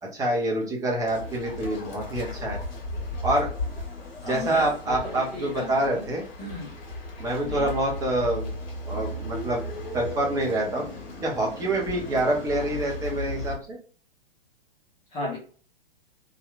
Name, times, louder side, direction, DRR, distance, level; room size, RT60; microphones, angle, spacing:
voice 1, 0.0-2.6 3.2-3.5 4.3-6.2 7.2-8.5 8.9-9.6 9.9-10.8 11.2-13.8, right 1 dB, 10° right, -2 dB, 0.7 m, -26 dB
sound 1, 1.1-13.6, left 2 dB, 50° left, 1.2 m, -35 dB
voice 2, 4.2-6.0 6.4-6.7 7.4-7.7 15.1-15.4, left 1 dB, 20° left, -5 dB, 1.0 m, -35 dB
2.8 x 2.4 x 2.3 m, 0.41 s
figure-of-eight pair, 110°, 29 cm